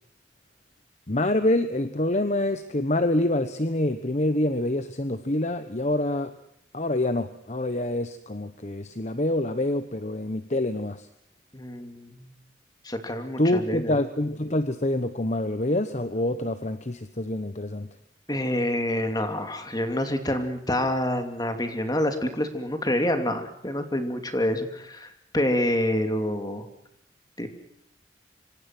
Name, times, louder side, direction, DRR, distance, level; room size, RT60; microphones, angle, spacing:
voice 1, 1.1-6.3 6.7-11.1 13.4-17.9, left 1 dB, 40° left, 10 dB, 1.1 m, -26 dB
voice 2, 11.5-12.3 12.8-13.9 18.3-26.7 27.4-27.5, left 1 dB, 20° left, 6 dB, 2.9 m, -27 dB
26.0 x 25.5 x 6.1 m, 0.73 s
head